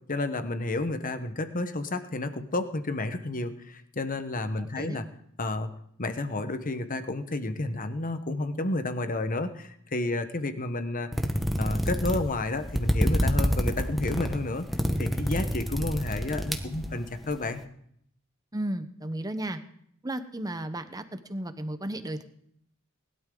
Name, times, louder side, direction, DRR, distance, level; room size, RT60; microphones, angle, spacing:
voice 1, 0.1-5.0 5.4-5.7 6.0-11.1 11.6-14.7 15.0-17.6, left 2 dB, 40° left, 9 dB, 1.1 m, -31 dB
voice 2, 4.6-5.0 18.5-19.6 20.0-22.2, right 1 dB, 15° right, 10 dB, 0.9 m, -34 dB
sound 1, 11.1-17.3, equal, ahead, 1.2 m, -27 dB
20.5 x 12.0 x 3.9 m, 0.70 s
head